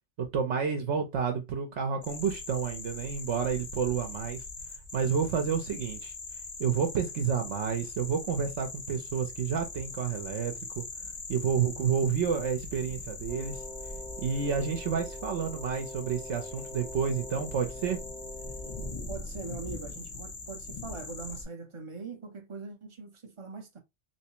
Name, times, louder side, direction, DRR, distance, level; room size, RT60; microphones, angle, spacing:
voice 1, 0.2-4.4 4.9-6.1 6.6-10.8 11.3-13.6 14.2-18.0, right 6 dB, 75° right, 1.0 m, -30 dB
sound 1, 2.0-21.4, left 3 dB, 40° left, 0.8 m, -41 dB
Wind instrument woodwind instrument, 13.3-19.0, left 1 dB, 75° left, 1.0 m, -45 dB
voice 2, 19.1-23.8, right 4 dB, 35° right, 0.6 m, -42 dB
3.3 x 3.1 x 2.9 m
omnidirectional pair, 1.2 m